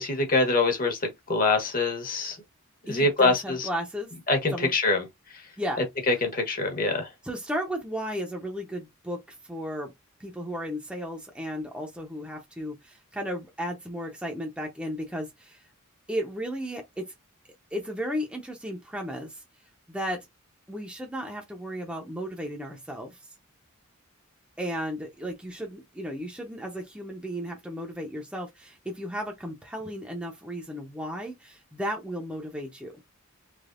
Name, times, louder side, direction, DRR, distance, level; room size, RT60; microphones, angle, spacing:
voice 1, 0.0-2.4 2.9-3.7 4.3-5.0 5.3-5.4 5.8-7.1, left 3 dB, 40° left, 1.0 m, -25 dB
voice 2, 2.9-4.1 4.5-4.7 5.6-5.8 7.2-9.2 9.5-9.9 10.2-15.6 16.1-17.1 17.7-19.4 19.9-20.3 20.7-23.2 24.6-32.9, equal, 5° right, 0.7 m, -34 dB
3.4 x 3.1 x 2.4 m
head